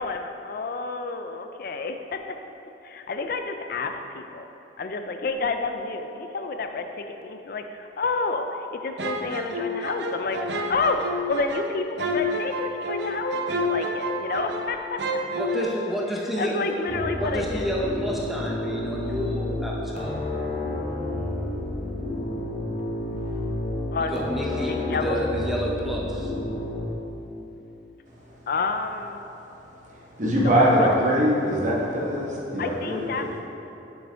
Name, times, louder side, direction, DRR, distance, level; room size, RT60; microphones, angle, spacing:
voice 1, 0.0-2.2 2.8-4.5 4.8-8.5 8.7-15.2 16.4-17.7 23.9-24.3 24.7-25.2 28.5-29.2 30.7-31.0 32.6-33.4, left 3 dB, 55° left, 6 dB, 0.4 m, -29 dB
sound 1, 9.0-14.7 15.0-15.6, equal, 75° right, 0.6 m, -29 dB
voice 2, 15.3-20.1 24.0-26.3, equal, ahead, -4 dB, 0.7 m, -30 dB
sound 2, 16.9-26.9, left 1 dB, 35° left, 0.9 m, -30 dB
voice 3, 30.2-33.3, equal, 45° right, -4 dB, 1.2 m, -22 dB
7.9 x 6.3 x 3.4 m, 2.9 s
head